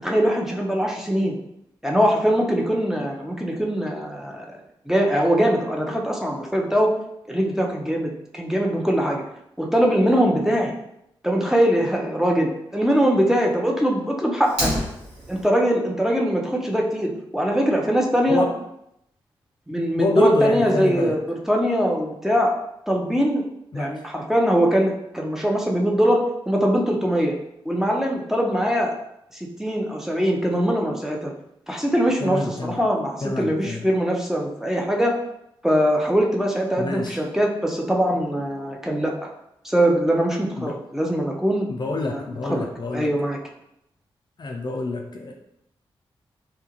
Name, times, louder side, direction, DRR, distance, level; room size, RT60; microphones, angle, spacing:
voice 1, 0.0-1.4 1.8-4.5 4.9-6.9 7.3-9.2 9.6-10.7 11.2-14.7 15.3-18.5 19.7-21.2 21.5-22.5 22.9-23.4 23.7-27.4 27.6-28.9 29.6-31.3 31.7-35.2 35.6-39.1 39.6-41.7 42.1-42.2 42.5-42.7 42.9-43.4, equal, 5° right, -1 dB, 0.7 m, -22 dB
Fire, 14.4-15.4, equal, 90° right, 1.2 m, -27 dB
voice 2, 20.0-21.2 23.7-23.9 32.2-32.9 33.2-33.9 36.7-37.2 40.6-40.8 41.7-43.1 44.4-45.3, left 2 dB, 45° left, 2 dB, 0.4 m, -27 dB
2.9 x 2.4 x 2.9 m, 0.79 s
supercardioid pair, 40°, 10 cm